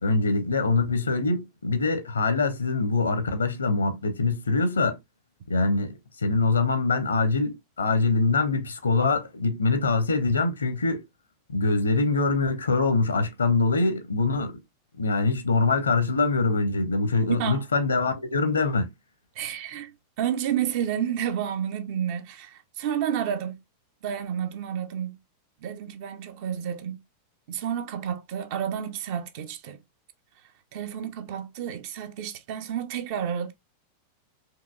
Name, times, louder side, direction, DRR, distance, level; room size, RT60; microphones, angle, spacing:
voice 1, 0.0-5.0 5.5-11.0 11.5-14.6 15.0-18.9, left 3 dB, 75° left, 0.8 m, -24 dB
voice 2, 17.3-17.6 19.3-23.6 24.0-25.2 25.6-27.0 27.5-29.8 30.7-33.5, right 9 dB, 50° right, 0.7 m, -30 dB
4.8 x 2.9 x 2.4 m
figure-of-eight pair, 90°, 0 cm